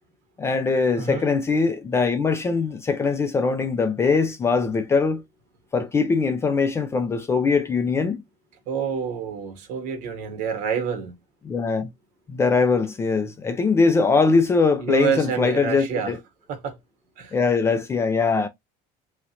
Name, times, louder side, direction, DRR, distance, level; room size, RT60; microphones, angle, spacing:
voice 1, 0.4-5.2 5.7-8.2 11.4-11.9 12.3-16.2 17.3-18.5, left 4 dB, 15° left, 0.3 m, -21 dB
voice 2, 1.0-1.3 8.7-11.1 14.8-16.2 16.5-16.8 17.2-17.4, right 6 dB, 55° right, 1.1 m, -27 dB
3.1 x 2.4 x 2.7 m
cardioid pair, 170°, 16 cm